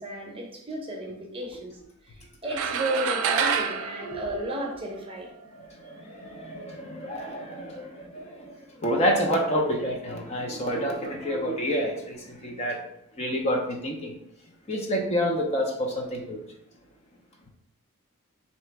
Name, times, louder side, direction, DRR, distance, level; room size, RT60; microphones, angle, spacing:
voice 1, 0.0-1.7 2.0-5.3, right 1 dB, 25° right, 0 dB, 0.8 m, -33 dB
sound 1, 2.5-5.1, right 6 dB, 75° right, 0.4 m, -28 dB
voice 2, 5.5-12.8 13.2-14.1 14.7-16.4, equal, 30° left, 0 dB, 0.7 m, -28 dB
3.3 x 3.0 x 4.6 m, 0.75 s
head